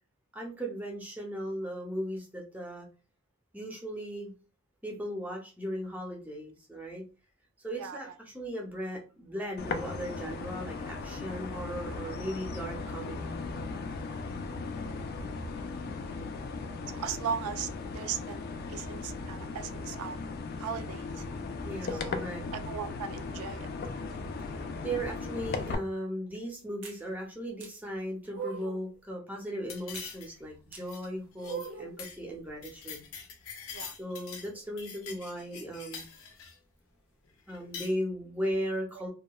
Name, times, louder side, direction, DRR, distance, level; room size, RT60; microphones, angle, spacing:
voice 1, 0.3-2.9 3.5-4.3 4.8-7.0 7.6-8.1 8.3-13.3 21.6-22.4 24.8-33.0 34.0-36.1 37.5-39.1, equal, 10° right, 0.6 m, -37 dB
voice 2, 7.8-8.1 16.9-18.4 18.7-20.2 20.6-21.2 21.9-22.2 22.5-23.7 33.7-34.0 38.9-39.1, right 7 dB, 80° right, 0.3 m, -38 dB
sound 1, 9.6-25.8, left 4 dB, 45° left, 0.3 m, -37 dB
sound 2, 26.8-27.0 27.6-27.7 28.3-28.9 29.9-30.1 30.7-30.8 31.4-32.0, right 7 dB, 60° right, 0.7 m, -40 dB
sound 3, 29.7-30.5 30.8-31.1 31.4-31.7 32.0-32.2 32.4-34.5 34.8-36.6 37.5-37.9, left 6 dB, 75° left, 0.6 m, -44 dB
2.8 x 2.2 x 2.2 m
head